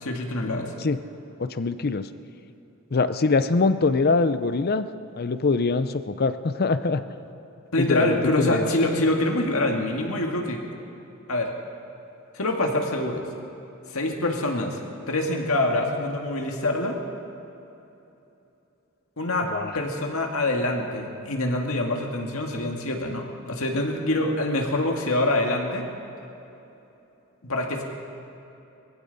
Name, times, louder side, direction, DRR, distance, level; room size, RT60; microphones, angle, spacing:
voice 1, 0.0-0.7 7.7-10.6 11.3-11.5 12.3-13.2 13.9-17.0 19.2-19.5 19.7-25.9 27.4-27.8, left 1 dB, 70° left, 1 dB, 1.9 m, -25 dB
voice 2, 1.4-2.1 2.9-4.9 5.2-7.0 7.8-8.7 19.5-19.8, left 3 dB, 45° left, 12 dB, 0.6 m, -23 dB
21.5 x 15.0 x 4.1 m, 3.0 s
head